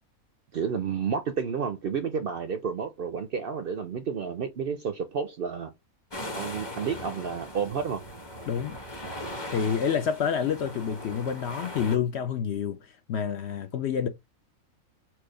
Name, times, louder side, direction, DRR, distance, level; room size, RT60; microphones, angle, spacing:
voice 1, 0.5-5.7 6.3-8.0, right 6 dB, 60° right, 0.6 m, -31 dB
sound 1, 6.1-12.0, left 1 dB, 20° left, 0.8 m, -39 dB
voice 2, 8.5-8.8 9.5-12.8 13.1-14.1, left 7 dB, 65° left, 0.7 m, -28 dB
4.5 x 2.4 x 4.8 m
omnidirectional pair, 1.5 m